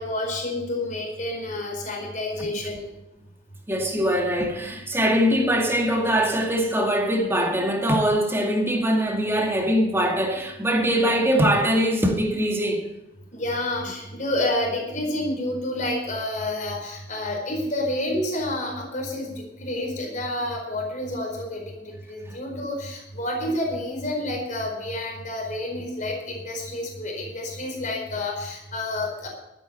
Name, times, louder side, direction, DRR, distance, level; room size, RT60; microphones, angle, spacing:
voice 1, 0.0-2.9 13.3-29.3, left 1 dB, 45° left, 4.6 m, -29 dB
voice 2, 3.7-12.9, equal, 15° right, 2.2 m, -22 dB
13.0 x 10.0 x 6.9 m
head